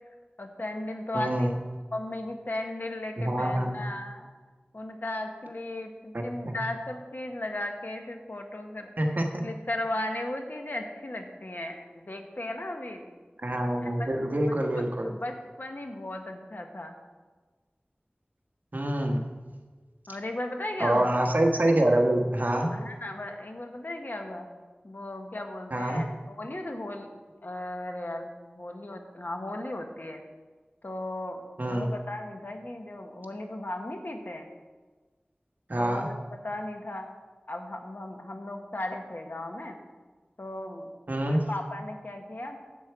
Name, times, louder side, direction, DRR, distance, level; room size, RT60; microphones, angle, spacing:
voice 1, 0.4-1.6 1.9-4.3 4.7-9.2 9.4-13.1 13.8-14.1 14.5-14.6 15.0-17.0 20.1-21.2 22.7-24.5 24.8-27.1 27.4-30.2 30.8-34.5 35.8-36.2 36.4-37.1 37.5-39.8 40.4-40.9 41.3-42.7, left 1 dB, 60° left, 4 dB, 1.2 m, -36 dB
voice 2, 1.1-1.6 3.2-3.8 6.1-6.5 9.0-9.4 13.4-15.1 18.7-19.2 20.8-22.7 25.7-26.0 31.6-31.9 35.7-36.1 41.1-41.4, right 1 dB, 55° right, 1 dB, 1.4 m, -26 dB
10.5 x 4.6 x 8.0 m, 1.4 s
wide cardioid pair, 50°, 4 cm